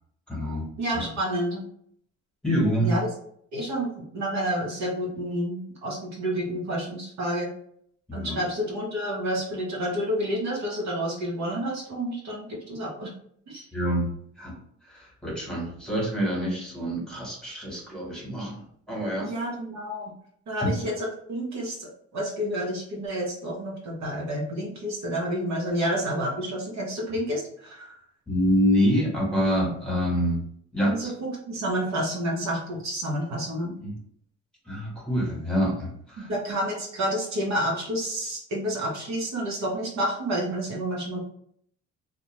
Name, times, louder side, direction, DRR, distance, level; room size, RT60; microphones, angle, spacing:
voice 1, 0.3-0.7 0.9-1.1 2.4-3.0 8.1-8.4 13.7-14.6 14.8-18.6 18.9-19.3 20.6-20.7 28.3-30.4 30.7-31.1 33.8-34.0 34.6-36.3, equal, ahead, -4 dB, 1.2 m, -26 dB
voice 2, 0.8-1.6 2.8-3.1 3.5-7.5 8.1-13.1 13.5-13.7 19.2-20.1 20.5-27.9 30.9-33.7 36.2-41.2, equal, 65° right, -3 dB, 0.9 m, -29 dB
2.4 x 2.2 x 3.0 m, 0.66 s
cardioid pair, 90°, 30 cm